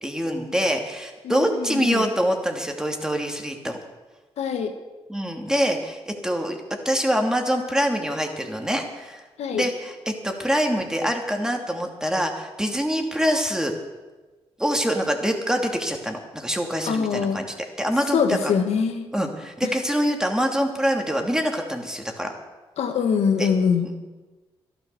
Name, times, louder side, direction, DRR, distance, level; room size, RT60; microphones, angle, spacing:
voice 1, 0.0-3.7 5.1-6.6 6.8-9.2 9.5-13.7 14.6-18.5 19.1-22.3 23.4-23.5, equal, 5° right, 3 dB, 2.7 m, -25 dB
voice 2, 1.2-2.1 4.4-4.7 9.4-9.7 16.9-17.4 18.1-19.1 22.8-23.9, left 6 dB, 85° left, 6 dB, 1.6 m, -23 dB
13.0 x 12.0 x 7.0 m, 1.2 s
cardioid pair, 60°, 11 cm